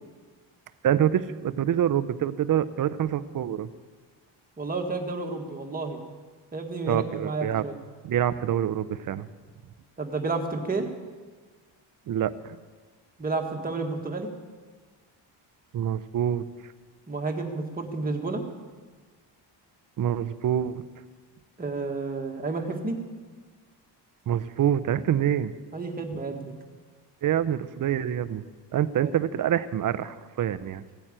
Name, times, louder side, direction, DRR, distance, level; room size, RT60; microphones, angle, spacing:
voice 1, 0.8-3.7 6.9-7.7 8.0-9.3 12.1-12.6 15.7-16.4 20.0-20.8 24.3-25.5 27.2-28.4 28.7-30.8, right 10 dB, 45° right, 14 dB, 0.7 m, -26 dB
voice 2, 4.6-6.0 6.5-7.7 10.0-10.9 13.2-14.3 17.1-18.4 21.6-23.0 25.7-26.5 29.0-29.1, right 3 dB, 20° right, 2 dB, 1.6 m, -31 dB
16.5 x 9.1 x 8.8 m, 1.4 s
wide cardioid pair, 170°, 44 cm